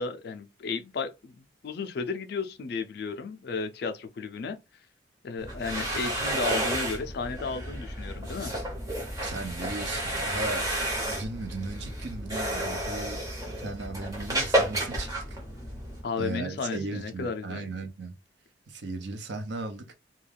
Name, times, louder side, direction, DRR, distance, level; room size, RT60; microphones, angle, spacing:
voice 1, 0.0-4.6 5.2-8.5 16.0-17.7, left 4 dB, 50° left, 0.3 m, -34 dB
sound 1, 5.4-16.0, right 1 dB, 15° right, 0.7 m, -31 dB
voice 2, 9.2-13.3 13.6-15.4 16.2-18.1 18.7-19.9, right 3 dB, 60° right, 0.6 m, -36 dB
2.2 x 2.2 x 3.3 m
head